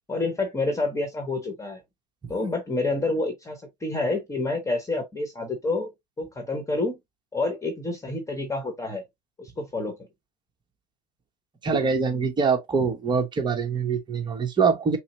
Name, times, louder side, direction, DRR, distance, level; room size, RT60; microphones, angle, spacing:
voice 1, 0.1-1.8 2.3-5.9 6.2-7.0 7.3-9.0 9.4-10.0, left 2 dB, 15° left, 1.2 m, -28 dB
voice 2, 11.6-15.0, right 5 dB, 20° right, 1.0 m, -24 dB
5.5 x 2.1 x 2.9 m
hypercardioid pair, 90°, 21 cm